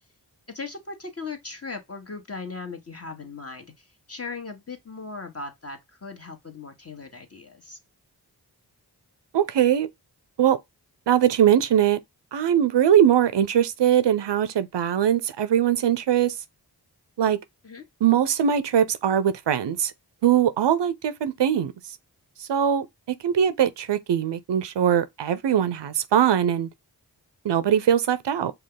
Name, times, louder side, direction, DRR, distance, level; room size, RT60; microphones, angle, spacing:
voice 1, 0.5-7.8 17.6-17.8, left 4 dB, 35° left, 1.4 m, -38 dB
voice 2, 9.3-9.9 10.4-10.6 11.1-12.0 12.3-16.3 17.2-17.4 18.0-19.9 20.2-21.7 22.5-22.9 23.2-26.7 27.4-28.5, right 9 dB, 85° right, 0.6 m, -21 dB
5.3 x 2.3 x 3.9 m
cardioid pair, 40°, 41 cm